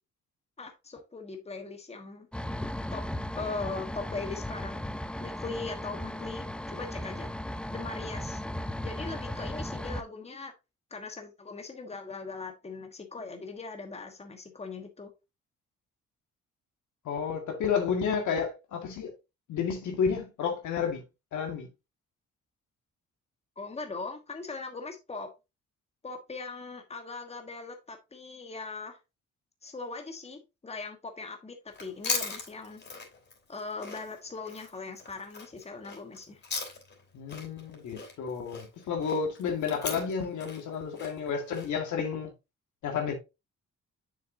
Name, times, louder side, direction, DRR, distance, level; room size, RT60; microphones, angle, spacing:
voice 1, 0.6-2.3 2.9-3.0 3.3-4.8 5.2-7.3 7.7-8.4 8.8-10.5 10.9-15.1 23.6-25.3 26.0-29.0 29.6-32.8 33.5-36.4, left 3 dB, 20° left, 1.4 m, -40 dB
sound 1, 2.3-10.0, left 1 dB, 5° left, 0.5 m, -36 dB
voice 2, 17.1-19.1 19.5-21.0 21.3-21.7 37.1-42.3 42.8-43.1, left 6 dB, 75° left, 2.1 m, -31 dB
Chewing mastication, 31.7-37.0 37.3-41.7, left 4 dB, 35° left, 3.7 m, -38 dB
6.9 x 6.5 x 2.7 m
cardioid pair, 90°, 30 cm